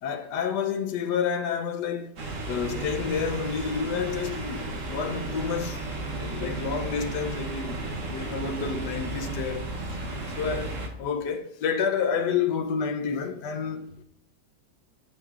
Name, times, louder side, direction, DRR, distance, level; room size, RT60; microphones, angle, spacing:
voice 1, 0.0-2.2 2.5-5.8 6.2-10.0 10.4-14.0, left 6 dB, 90° left, 1.3 m, -29 dB
sound 1, 2.2-10.9, right 2 dB, 55° right, 1.3 m, -34 dB
11.0 x 5.0 x 2.4 m
omnidirectional pair, 1.8 m